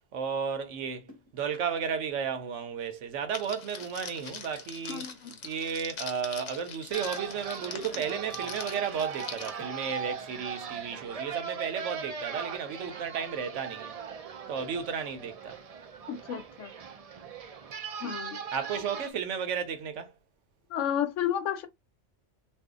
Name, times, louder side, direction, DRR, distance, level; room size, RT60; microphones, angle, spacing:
voice 1, 0.1-1.1 1.3-5.0 5.4-14.0 14.5-15.6 18.5-20.1, right 7 dB, 85° right, 1.1 m, -33 dB
sound 1, 1.1-1.7 3.8-4.5 6.3-6.9 7.5-7.6 7.8-8.4 9.6-10.6 12.6-12.8, equal, 25° right, 1.0 m, -56 dB
Crackle, 3.3-9.5, left 5 dB, 50° left, 0.6 m, -43 dB
voice 2, 4.9-5.3 16.1-16.7 18.0-18.4 20.7-21.7, left 9 dB, 90° left, 1.0 m, -32 dB
sound 2, 6.9-19.1, right 6 dB, 60° right, 0.4 m, -39 dB
2.6 x 2.4 x 3.6 m
omnidirectional pair, 1.2 m